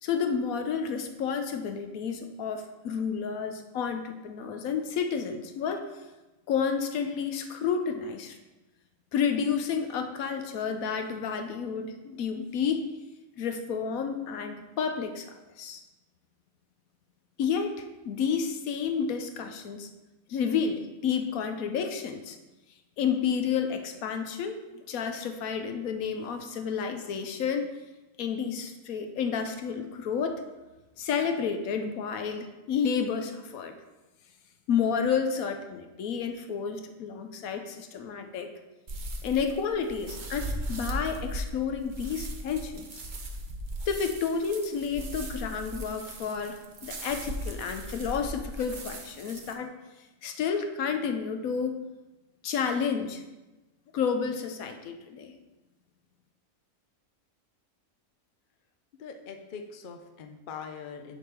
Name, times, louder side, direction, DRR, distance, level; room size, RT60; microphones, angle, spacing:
voice 1, 0.0-5.8 6.5-8.4 9.1-12.8 13.4-15.3 15.6-15.8 17.4-19.9 20.3-22.4 23.0-27.7 28.2-30.4 31.0-33.8 34.7-38.5 39.2-42.9 43.9-46.6 46.8-49.7 50.2-51.8 52.4-53.2 53.9-55.3, left 6 dB, 70° left, 6 dB, 1.1 m, -30 dB
sound 1, 38.9-49.5, right 1 dB, 45° right, 0.7 m, -38 dB
voice 2, 59.0-61.2, left 6 dB, 55° left, 5 dB, 0.6 m, -42 dB
7.2 x 3.5 x 5.8 m, 1.1 s
omnidirectional pair, 1.6 m